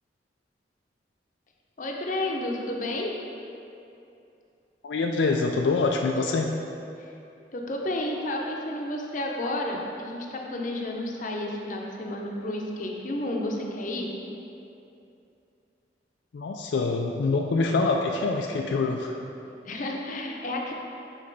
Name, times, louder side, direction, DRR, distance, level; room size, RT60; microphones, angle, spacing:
voice 1, 1.8-3.2 7.5-14.1 19.6-20.7, left 1 dB, 50° left, 0 dB, 0.7 m, -31 dB
voice 2, 4.8-6.5 16.3-19.1, left 3 dB, 85° left, 2 dB, 0.4 m, -25 dB
5.3 x 4.1 x 5.3 m, 2.7 s
head